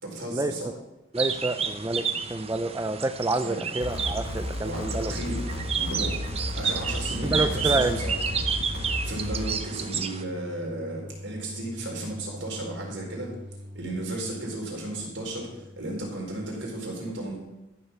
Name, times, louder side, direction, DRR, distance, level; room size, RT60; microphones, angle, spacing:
voice 1, 0.0-0.7 3.4-3.6 4.6-5.4 5.7-6.2 6.5-8.1 8.6-13.4 13.7-17.4, right 1 dB, 80° right, -1 dB, 4.3 m, -34 dB
voice 2, 1.1-2.0 2.3-5.1 7.2-8.0, right 2 dB, 20° right, 9 dB, 0.4 m, -28 dB
sound 1, 1.1-10.2, right 6 dB, 35° right, 0.8 m, -31 dB
sound 2, 3.8-9.5, left 1 dB, 60° left, 1.1 m, -33 dB
sound 3, 4.3-16.1, equal, 5° left, 2.3 m, -44 dB
13.5 x 6.7 x 6.8 m, 0.98 s
head